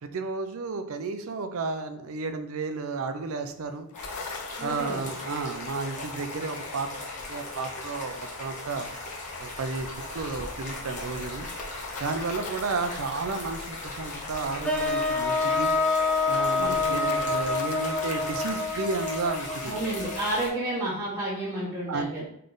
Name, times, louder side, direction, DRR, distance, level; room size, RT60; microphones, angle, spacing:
voice 1, 0.0-3.9 4.6-6.9 7.2-8.9 9.4-11.5 12.0-15.7 16.3-19.7 21.9-22.2, right 4 dB, 65° right, 8 dB, 0.5 m, -32 dB
sound 1, 3.7-18.6, left 4 dB, 85° left, 0.5 m, -41 dB
sound 2, 3.9-20.5, left 1 dB, 35° left, 1.1 m, -39 dB
voice 2, 4.6-5.0 16.6-17.3 19.6-22.3, right 1 dB, 20° right, -11 dB, 1.2 m, -31 dB
sound 3, 14.6-20.7, left 3 dB, 5° left, 0.7 m, -27 dB
3.7 x 3.3 x 3.8 m, 0.74 s
head